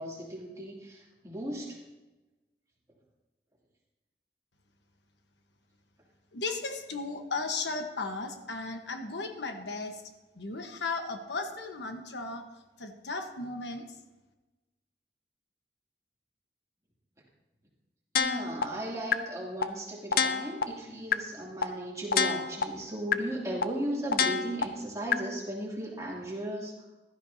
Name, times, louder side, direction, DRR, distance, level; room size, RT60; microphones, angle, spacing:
voice 1, 0.0-1.8 18.2-26.7, right 1 dB, 20° right, -4 dB, 2.7 m, -36 dB
voice 2, 6.3-10.0 10.4-12.5 12.8-14.0, left 3 dB, 80° left, 5 dB, 1.2 m, -35 dB
sound 1, 18.2-18.6 19.1-19.2 19.6-19.7 20.1-20.6 21.1-21.2 21.6-21.7 22.1-22.6 23.1-23.2 23.6-23.7 24.1-24.6 25.1-25.2, left 6 dB, 55° left, 0.6 m, -25 dB
15.5 x 12.5 x 2.8 m, 1.1 s
head